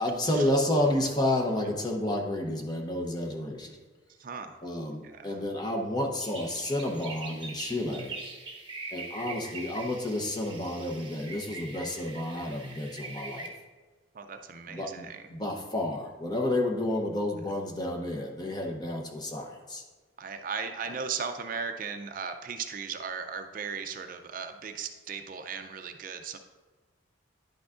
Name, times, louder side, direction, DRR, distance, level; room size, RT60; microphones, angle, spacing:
voice 1, 0.0-3.8 4.6-8.2 8.9-13.5 14.7-19.8, left 1 dB, 20° left, 2 dB, 0.7 m, -30 dB
voice 2, 4.2-4.6 5.0-5.4 14.1-15.4 20.2-26.4, right 6 dB, 45° right, 7 dB, 0.4 m, -37 dB
sound 1, 6.1-13.5, right 3 dB, 25° right, 1.1 m, -43 dB
10.5 x 6.0 x 2.5 m, 1.3 s
head